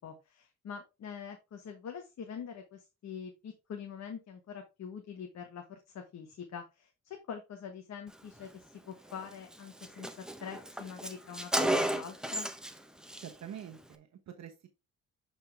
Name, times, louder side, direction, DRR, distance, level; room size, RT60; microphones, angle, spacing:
voice 1, 0.0-12.5, left 7 dB, 60° left, 4 dB, 1.4 m, -45 dB
Car, 9.1-9.2 9.5-9.6 9.8-12.8 13.0-13.3, right 1 dB, ahead, 0.9 m, -33 dB
voice 2, 13.2-14.7, right 9 dB, 60° right, 5 dB, 1.1 m, -46 dB
7.9 x 4.5 x 3.4 m, 0.26 s
cardioid pair, 90°, 30 cm